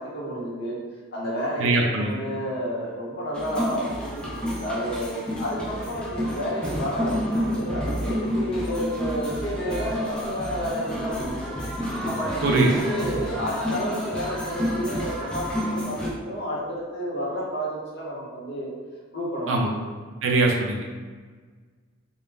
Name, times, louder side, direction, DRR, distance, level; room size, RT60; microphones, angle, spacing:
voice 1, 0.1-0.7 1.1-11.7 12.0-18.7 19.1-19.7, equal, 55° left, -6 dB, 0.8 m, -31 dB
voice 2, 1.6-2.2 12.4-12.7 19.5-19.7 20.2-21.0, right 2 dB, 65° right, 0 dB, 0.4 m, -22 dB
sound 1, 3.3-16.1, equal, 5° left, 0.3 m, -29 dB
2.2 x 2.0 x 3.2 m, 1.5 s
head